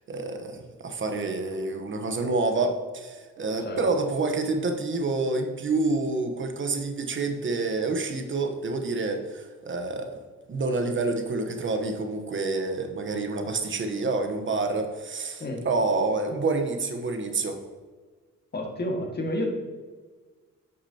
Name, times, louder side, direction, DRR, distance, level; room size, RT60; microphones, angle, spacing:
voice 1, 0.1-10.2 10.5-17.6, right 3 dB, 40° right, 5 dB, 1.0 m, -28 dB
voice 2, 18.5-19.5, left 1 dB, 35° left, 1 dB, 1.8 m, -30 dB
8.4 x 6.8 x 2.8 m, 1.4 s
cardioid pair, 90°, 30 cm